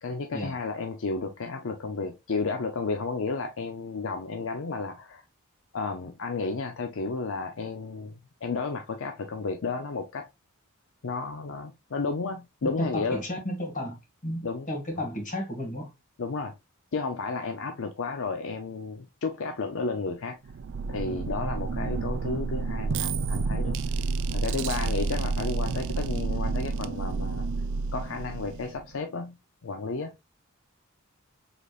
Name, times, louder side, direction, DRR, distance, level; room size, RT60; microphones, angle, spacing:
voice 1, 0.0-5.2 5.7-10.3 11.0-13.2 14.4-14.7 16.2-16.5 16.9-20.4 20.9-23.8 24.3-27.5 27.9-29.4 29.6-30.1, left 4 dB, 65° left, 0.6 m, -32 dB
voice 2, 12.6-15.9, left 1 dB, 40° left, 1.9 m, -33 dB
sound 1, 20.4-28.9, right 4 dB, 60° right, 0.4 m, -30 dB
5.0 x 4.0 x 2.4 m
head